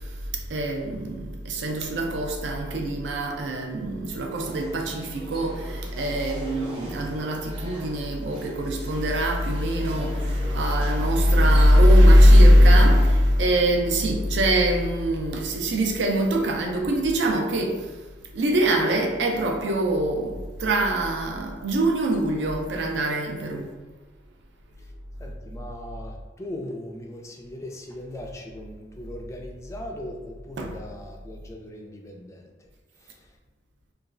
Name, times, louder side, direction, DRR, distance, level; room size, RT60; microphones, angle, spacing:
voice 1, 0.0-18.0 18.3-23.7 30.6-30.7, equal, 80° right, 0.4 m, -21 dB
sound 1, 4.4-13.0, equal, 30° right, 0.6 m, -42 dB
voice 2, 25.2-32.7 32.9-33.4, left 1 dB, 15° left, 0.3 m, -39 dB
3.0 x 2.3 x 2.5 m
head